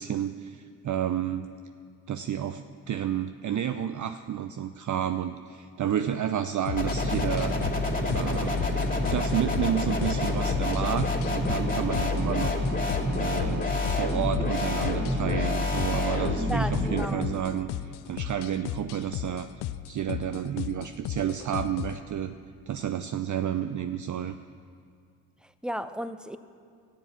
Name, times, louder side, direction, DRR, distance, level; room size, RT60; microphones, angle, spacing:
voice 1, 0.0-1.5 2.1-7.6 8.1-8.6 9.1-12.7 13.2-19.5 19.9-22.3 22.7-24.4, right 10 dB, 45° right, 10 dB, 0.6 m, -31 dB
sound 1, 6.7-22.0, left 13 dB, 65° left, 0.6 m, -36 dB
sound 2, 6.8-17.1, left 2 dB, 20° left, 2.6 m, -27 dB
voice 2, 16.5-17.3 25.4-26.4, equal, ahead, 12 dB, 0.7 m, -34 dB
13.0 x 7.5 x 8.1 m, 2.2 s
hypercardioid pair, 50°, 43 cm